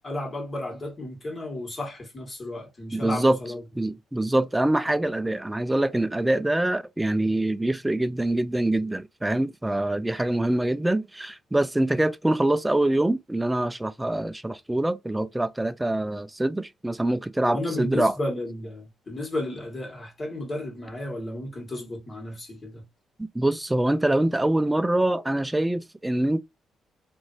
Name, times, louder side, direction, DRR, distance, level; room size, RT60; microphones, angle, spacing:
voice 1, 0.0-3.6 17.4-22.9, left 1 dB, 30° left, 1.6 m, -33 dB
voice 2, 2.9-3.4 3.8-18.1 23.2-26.4, right 1 dB, 10° right, 0.3 m, -24 dB
3.0 x 2.5 x 2.6 m
cardioid pair, 90°, 0 cm